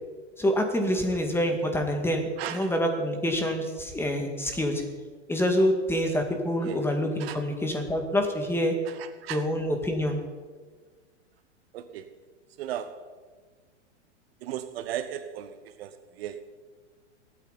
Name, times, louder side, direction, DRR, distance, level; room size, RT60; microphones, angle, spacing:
voice 1, 0.4-4.8 5.3-8.7 9.3-10.2, equal, 5° left, 4 dB, 2.0 m, -26 dB
voice 2, 2.4-2.7 6.6-6.8 7.2-7.4 8.8-9.4 11.7-12.1 12.6-13.1 14.4-16.4, right 11 dB, 55° right, 11 dB, 1.0 m, -36 dB
23.5 x 9.1 x 4.1 m, 1.5 s
hypercardioid pair, 115°, 36 cm